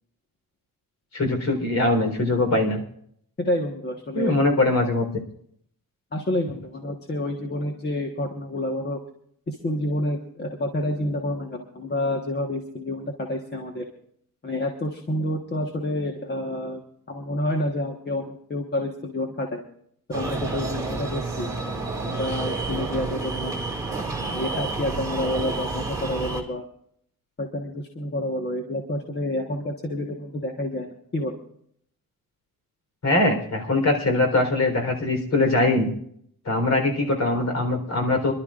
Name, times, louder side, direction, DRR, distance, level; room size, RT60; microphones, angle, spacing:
voice 1, 1.1-2.8 4.1-5.1 33.0-35.9 36.5-38.3, left 2 dB, 50° left, 4 dB, 3.9 m, -22 dB
voice 2, 3.4-4.3 6.1-9.0 9.5-13.8 14.4-16.8 17.1-19.6 20.1-21.5 22.0-26.6 27.4-31.3, left 1 dB, 30° left, 2 dB, 1.4 m, -29 dB
sound 1, 20.1-26.4, right 3 dB, 10° right, 2.4 m, -30 dB
27.0 x 12.0 x 2.5 m, 0.66 s
wide cardioid pair, 155°, 36 cm